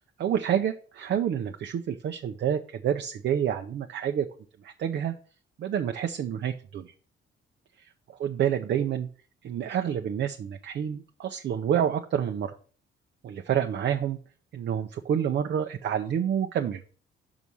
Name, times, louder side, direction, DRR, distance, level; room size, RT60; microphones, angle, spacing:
voice 1, 0.2-4.3 4.6-5.1 5.6-6.9 8.2-9.1 9.4-12.5 13.2-14.2 14.5-16.8, right 9 dB, 60° right, 5 dB, 0.6 m, -28 dB
5.5 x 4.9 x 6.1 m, 0.41 s
cardioid pair, 90°, 20 cm